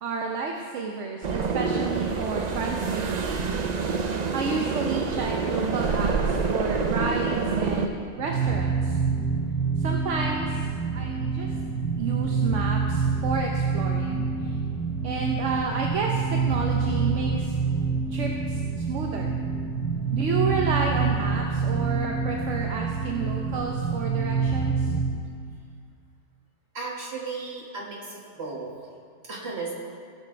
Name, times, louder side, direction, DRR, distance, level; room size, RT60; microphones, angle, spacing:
voice 1, 0.0-3.6 4.3-9.0 9.8-10.6 10.9-11.5 12.0-14.6 15.0-17.6 18.1-19.4 20.1-24.9, right 4 dB, 80° right, 1 dB, 1.1 m, -31 dB
sound 1, 1.2-7.9, right 4 dB, 45° right, 0.6 m, -27 dB
sound 2, 8.2-25.2, right 5 dB, 55° left, 2.4 m, -27 dB
voice 2, 26.7-28.7 29.2-29.7, right 4 dB, 60° right, -2 dB, 1.9 m, -35 dB
16.5 x 6.1 x 4.4 m, 2.2 s
omnidirectional pair, 1.2 m